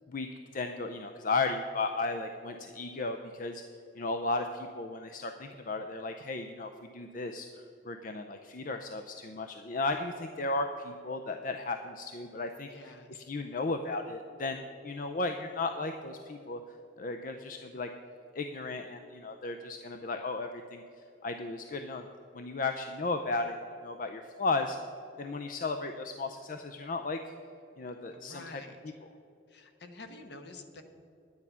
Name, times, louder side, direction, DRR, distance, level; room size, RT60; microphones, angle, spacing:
voice 1, 0.1-3.6 4.0-17.9 18.3-20.8 21.2-22.1 22.3-24.8 25.2-27.3 27.8-29.1, left 3 dB, 45° left, 6 dB, 0.5 m, -35 dB
voice 2, 12.7-13.2 28.1-28.8 29.5-30.8, left 3 dB, 60° left, 6 dB, 1.1 m, -48 dB
11.0 x 9.6 x 5.6 m, 2.7 s
head